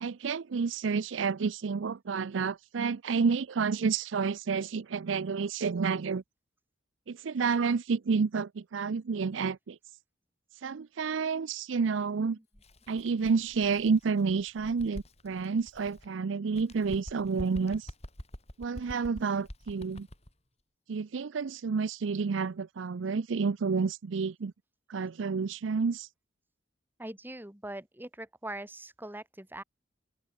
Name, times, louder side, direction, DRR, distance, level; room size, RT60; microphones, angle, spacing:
voice 1, 0.0-6.2 7.1-9.8 10.6-12.4 12.9-17.9 18.6-20.1 20.9-24.5 24.9-26.1, right 5 dB, 85° right, 0.5 m, -30 dB
Bird, 12.5-16.1 16.5-20.3, equal, 35° left, 5.8 m, -46 dB
voice 2, 27.0-29.6, right 1 dB, 10° right, 1.7 m, -42 dB
open air
head